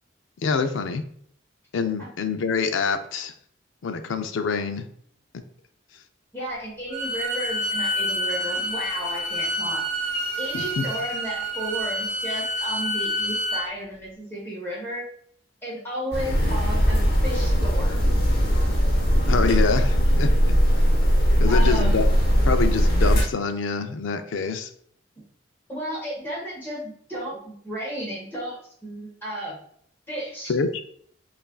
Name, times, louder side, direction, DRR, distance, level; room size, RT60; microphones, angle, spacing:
voice 1, 0.4-1.0 1.7-3.3 3.8-4.8 10.5-10.8 19.3-20.3 21.4-22.0 22.4-24.7 30.5-30.7, left 5 dB, 75° left, 8 dB, 0.4 m, -25 dB
voice 2, 6.3-9.8 10.4-15.1 15.6-18.0 21.4-21.9 25.7-28.6 28.8-29.6 30.1-30.5, equal, 10° left, -6 dB, 1.2 m, -33 dB
Bowed string instrument, 6.9-13.7, equal, 55° right, 0.9 m, -28 dB
sound 1, 16.1-23.2, equal, 50° left, 0.8 m, -20 dB
5.4 x 2.5 x 2.2 m, 0.62 s
head